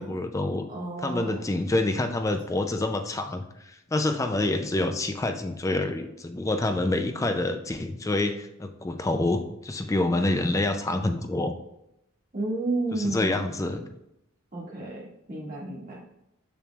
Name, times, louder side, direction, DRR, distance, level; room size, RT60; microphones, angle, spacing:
voice 1, 0.0-0.7 1.0-11.5 12.9-13.8, left 2 dB, 15° left, 7 dB, 0.3 m, -27 dB
voice 2, 0.7-1.4 12.3-13.4 14.5-16.0, right 2 dB, 40° right, -4 dB, 1.9 m, -31 dB
6.8 x 6.3 x 2.3 m, 0.86 s
head